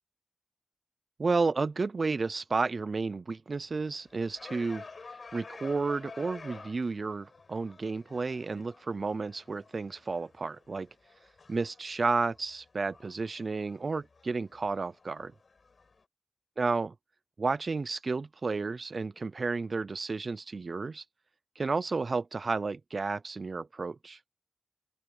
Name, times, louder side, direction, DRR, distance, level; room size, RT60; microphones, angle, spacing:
voice 1, 1.2-4.8 5.3-10.9 11.5-15.3 16.6-16.9 17.4-21.0 21.6-24.2, right 4 dB, 65° right, 0.5 m, -32 dB
sound 1, 3.8-16.0, left 4 dB, 65° left, 7.9 m, -51 dB
open air
wide cardioid pair, 60°, 0 cm